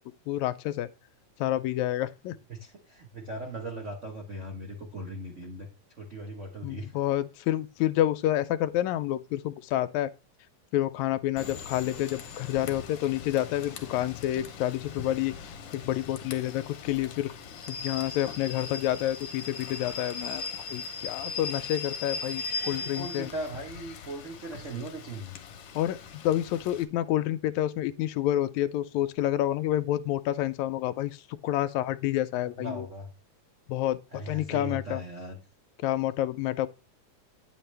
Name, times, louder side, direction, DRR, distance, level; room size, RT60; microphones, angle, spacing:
voice 1, 0.3-0.9 1.4-2.4 6.6-10.1 10.7-17.3 17.7-23.3 25.7-32.9 33.7-34.0 34.3-35.0 35.8-36.7, left 13 dB, 80° left, 1.8 m, -29 dB
voice 2, 2.5-5.7 6.0-6.9 22.6-25.4 32.6-33.1 34.1-35.4, right 1 dB, 80° right, 0.6 m, -38 dB
Rain / Train, 11.4-26.8, left 5 dB, 60° left, 1.7 m, -39 dB
9.3 x 7.6 x 3.3 m
omnidirectional pair, 3.4 m